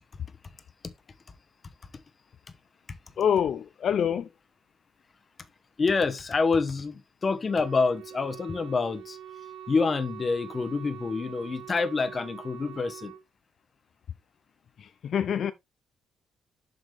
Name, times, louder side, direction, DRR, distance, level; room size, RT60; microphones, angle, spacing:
voice 1, 3.2-4.3 14.8-15.5, left 8 dB, 60° left, 0.4 m, -26 dB
voice 2, 5.8-9.2 9.7-13.1, left 4 dB, 35° left, 1.0 m, -27 dB
Wind instrument woodwind instrument, 7.4-13.2, right 10 dB, 80° right, 1.0 m, -44 dB
7.7 x 5.1 x 3.3 m
cardioid pair, 90°, 0 cm